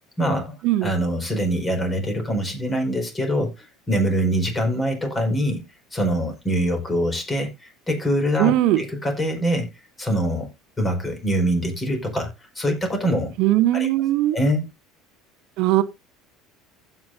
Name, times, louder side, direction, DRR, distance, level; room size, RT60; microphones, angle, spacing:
voice 1, 0.2-0.6 0.8-3.5 3.9-5.6 5.9-8.5 8.8-9.7 10.0-10.5 10.8-12.3 12.5-13.3 13.7-13.9 14.3-14.7, equal, 20° left, 4.9 m, -24 dB
voice 2, 8.4-8.8 13.4-14.4 15.6-15.8, right 14 dB, 65° right, 0.8 m, -19 dB
15.5 x 5.8 x 2.6 m
hypercardioid pair, 75°, 0 cm